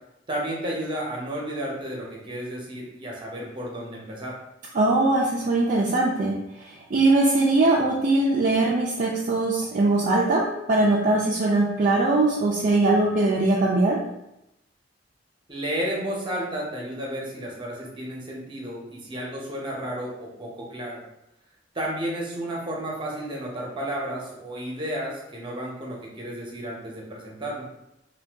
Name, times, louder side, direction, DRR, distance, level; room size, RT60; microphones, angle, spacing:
voice 1, 0.3-4.4 15.5-21.0 21.7-27.6, right 1 dB, 25° right, -2 dB, 0.8 m, -32 dB
voice 2, 4.7-14.0, right 2 dB, 45° right, -3 dB, 0.4 m, -21 dB
2.6 x 2.2 x 3.4 m, 0.86 s
head